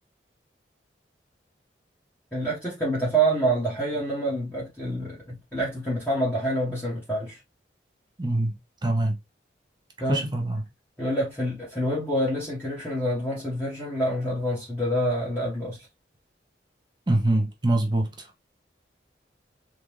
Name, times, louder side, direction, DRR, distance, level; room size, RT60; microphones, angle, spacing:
voice 1, 2.3-7.4 10.0-10.3 11.0-15.9, right 1 dB, 10° left, 1.3 m, -27 dB
voice 2, 8.2-8.6 8.8-9.2 10.1-10.6 17.1-18.1, right 1 dB, 25° right, 0.6 m, -24 dB
3.7 x 2.4 x 3.1 m
head